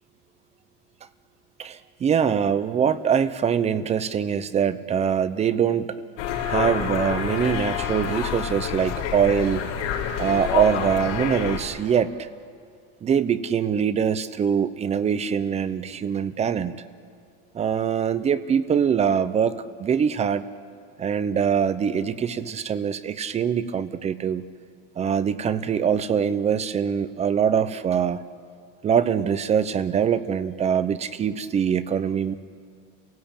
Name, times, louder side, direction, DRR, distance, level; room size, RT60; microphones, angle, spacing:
voice 1, 1.6-5.9 6.5-9.6 10.2-12.3 13.0-16.8 17.5-20.5 21.0-24.4 25.0-28.2 28.8-32.3, right 7 dB, 20° right, 14 dB, 0.6 m, -23 dB
sound 1, 6.2-11.6, left 8 dB, 90° left, 4.2 m, -28 dB
30.0 x 17.0 x 8.8 m, 2.2 s
supercardioid pair, 155°, 36 cm